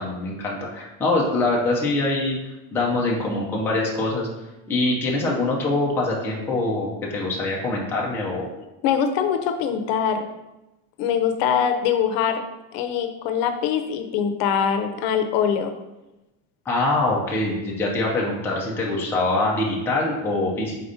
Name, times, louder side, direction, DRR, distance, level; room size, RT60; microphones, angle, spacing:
voice 1, 0.0-2.4 2.7-4.3 4.7-8.5 16.7-20.8, left 2 dB, 5° left, -3 dB, 0.4 m, -24 dB
voice 2, 8.8-10.3 11.0-12.4 12.7-15.7, left 8 dB, 80° left, 7 dB, 0.6 m, -23 dB
4.3 x 2.6 x 4.8 m, 1.0 s
cardioid pair, 175°, 42 cm